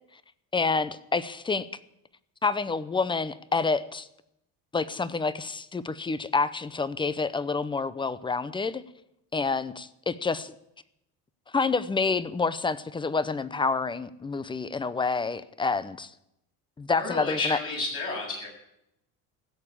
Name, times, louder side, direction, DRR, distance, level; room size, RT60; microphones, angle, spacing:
voice 1, 0.5-1.7 2.4-4.1 4.7-8.8 9.3-10.5 11.5-16.1 16.8-17.6, left 4 dB, 15° left, 16 dB, 0.7 m, -28 dB
voice 2, 16.9-18.5, left 3 dB, 40° left, -2 dB, 7.5 m, -31 dB
16.0 x 7.0 x 10.0 m, 0.81 s
cardioid pair, 120°, 36 cm